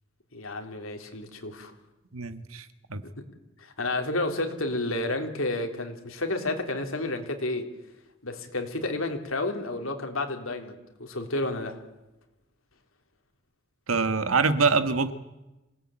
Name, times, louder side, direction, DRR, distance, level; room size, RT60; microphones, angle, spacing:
voice 1, 0.3-1.7 3.6-7.7 8.2-11.8, left 2 dB, 70° left, 5 dB, 3.5 m, -31 dB
voice 2, 2.1-3.0 13.9-15.1, right 4 dB, 80° right, 11 dB, 1.6 m, -25 dB
27.0 x 18.0 x 8.9 m, 1.0 s
head